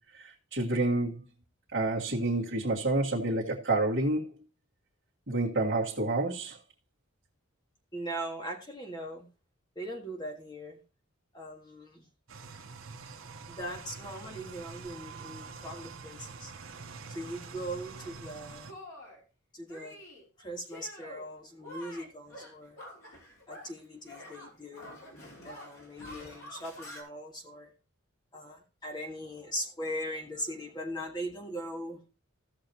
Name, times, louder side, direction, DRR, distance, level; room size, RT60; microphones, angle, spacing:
voice 1, 0.1-1.2 1.7-4.3 5.3-6.6, right 2 dB, 50° right, 1.7 m, -29 dB
voice 2, 7.9-9.3 9.8-10.8 11.3-12.1 13.5-16.5 17.1-18.8 19.5-20.0 20.4-22.8 23.5-25.0 25.4-27.7 28.3-32.1, equal, 20° left, 1.7 m, -40 dB
sound 1, 12.3-18.7, right 4 dB, 70° right, 1.1 m, -46 dB
Shatter, 18.0-18.2 18.7-19.2 19.7-20.2 20.6-21.3 21.6-23.8 24.0-27.0, left 1 dB, 85° left, 3.4 m, -47 dB
15.5 x 6.7 x 3.0 m
head